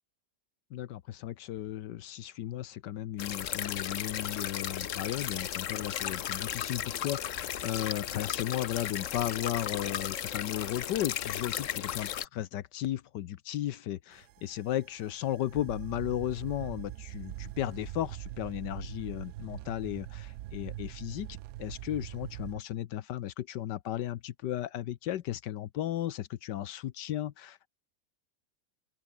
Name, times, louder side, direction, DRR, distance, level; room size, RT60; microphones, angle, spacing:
voice 1, 0.7-27.7, left 12 dB, 80° left, 1.4 m, -35 dB
sound 1, 3.2-12.3, left 10 dB, 55° left, 1.0 m, -35 dB
sound 2, 14.1-22.6, right 15 dB, 70° right, 0.9 m, -43 dB
open air
omnidirectional pair, 1.8 m